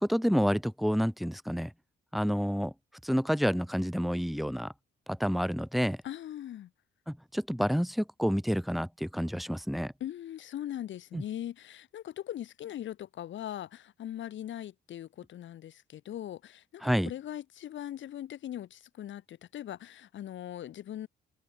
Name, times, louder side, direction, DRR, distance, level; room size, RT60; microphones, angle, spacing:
voice 1, 0.0-1.7 2.1-2.7 3.0-4.7 5.1-6.0 7.1-9.9 11.1-11.2 16.8-17.1, equal, ahead, 1.7 m, -29 dB
voice 2, 6.0-6.7 10.0-21.1, left 11 dB, 70° left, 2.5 m, -40 dB
cardioid pair, 90°, 20 cm